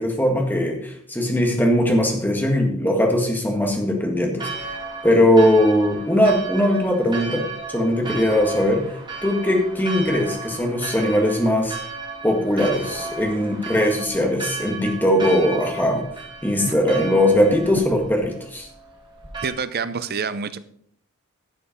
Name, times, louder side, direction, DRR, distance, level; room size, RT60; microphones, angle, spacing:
voice 1, 0.0-4.7 5.0-8.9 9.2-11.8 12.2-16.0 16.4-18.7, left 1 dB, 10° left, 2 dB, 1.8 m, -20 dB
Church bell, 4.4-19.5, right 3 dB, 20° right, 1.9 m, -34 dB
voice 2, 19.4-20.6, right 5 dB, 45° right, 13 dB, 0.6 m, -27 dB
11.5 x 6.9 x 5.2 m, 0.65 s
head